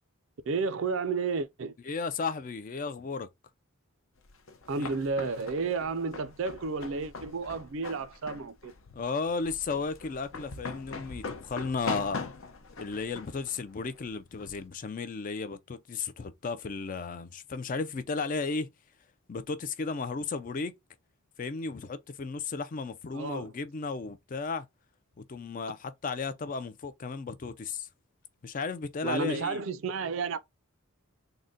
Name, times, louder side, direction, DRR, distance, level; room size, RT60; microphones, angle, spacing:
voice 1, 0.5-1.7 4.7-8.7 23.1-23.5 29.0-30.4, right 4 dB, 60° right, 0.4 m, -32 dB
voice 2, 1.9-3.3 4.8-4.9 8.9-12.3 12.8-18.7 19.3-20.7 21.4-24.7 25.2-27.9 28.4-29.6, left 4 dB, 40° left, 0.4 m, -34 dB
sound 1, 4.2-14.7, left 4 dB, 65° left, 0.7 m, -42 dB
3.8 x 2.1 x 3.6 m
head